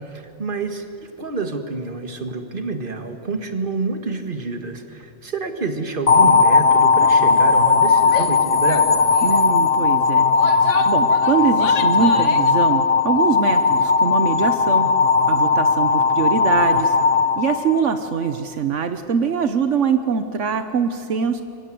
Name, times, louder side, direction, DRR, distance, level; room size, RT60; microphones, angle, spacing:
voice 1, 0.0-9.0, right 3 dB, 45° right, 6 dB, 2.1 m, -28 dB
sound 1, 6.1-18.2, left 4 dB, 55° left, 1.1 m, -17 dB
Female speech woman speaking / Yell, 8.1-8.4 8.7-8.9 9.1-9.5 10.1-12.6, left 6 dB, 80° left, 1.3 m, -31 dB
voice 2, 9.2-10.3 10.7-14.9 15.3-17.0 17.4-21.4, right 6 dB, 85° right, 9 dB, 1.4 m, -23 dB
27.0 x 24.0 x 7.8 m, 2.5 s
omnidirectional pair, 1.2 m